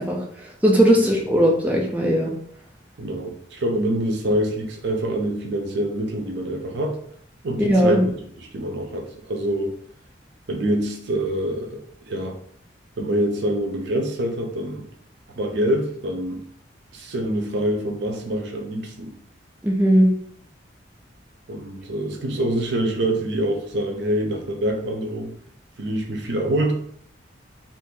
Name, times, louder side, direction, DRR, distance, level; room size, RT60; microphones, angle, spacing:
voice 1, 0.0-2.3 7.6-8.0 19.6-20.1, equal, 10° right, -2 dB, 0.4 m, -18 dB
voice 2, 3.0-7.0 7.4-8.0 8.5-9.7 10.5-12.4 13.0-14.9 15.3-16.4 16.9-19.2 21.5-25.3 25.8-26.7, right 1 dB, 65° right, 2 dB, 0.6 m, -25 dB
2.6 x 2.6 x 3.7 m, 0.64 s
head